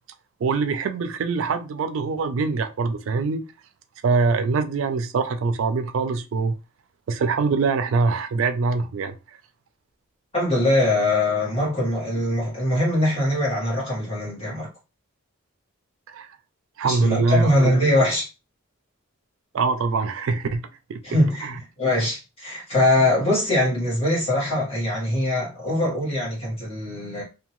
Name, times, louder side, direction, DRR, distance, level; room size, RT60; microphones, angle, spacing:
voice 1, 0.4-3.4 4.0-6.6 7.1-9.2 16.1-16.3 16.8-17.7 19.5-21.0 21.4-21.5, right 4 dB, 65° right, 0.3 m, -23 dB
voice 2, 10.3-14.7 16.8-18.2 21.0-21.5 21.8-27.2, left 1 dB, 30° left, 1.4 m, -22 dB
2.7 x 2.2 x 3.0 m
head